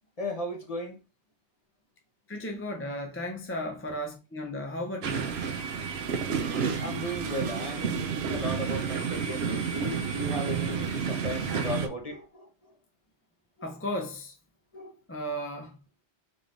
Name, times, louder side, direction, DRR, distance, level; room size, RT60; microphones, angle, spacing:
voice 1, 0.2-1.0 6.8-12.5 14.7-14.9, left 1 dB, 35° left, 1.1 m, -36 dB
voice 2, 2.3-5.3 13.6-14.3 15.1-15.8, equal, 20° left, 0.4 m, -35 dB
sound 1, 5.0-11.9, right 6 dB, 70° right, 0.9 m, -30 dB
3.8 x 3.2 x 3.9 m
omnidirectional pair, 1.2 m